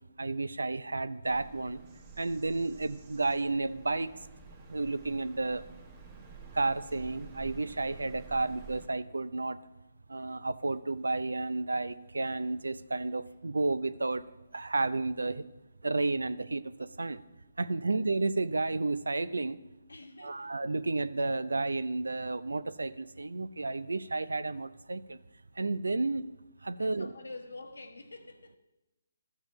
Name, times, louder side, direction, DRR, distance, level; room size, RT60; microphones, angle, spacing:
voice 1, 0.2-1.8 2.2-4.1 4.7-5.7 6.5-9.6 10.1-14.2 14.5-15.4 15.8-17.2 17.6-19.6 20.2-25.2 25.6-26.2 26.6-27.1, right 3 dB, 85° right, 0.4 m, -32 dB
Bird vocalization bird call bird song, 1.2-8.9, right 5 dB, 30° right, 1.5 m, -51 dB
voice 2, 19.9-20.5 26.8-28.6, left 3 dB, 85° left, 1.1 m, -47 dB
13.5 x 7.0 x 3.1 m
hypercardioid pair, 150°, 0 cm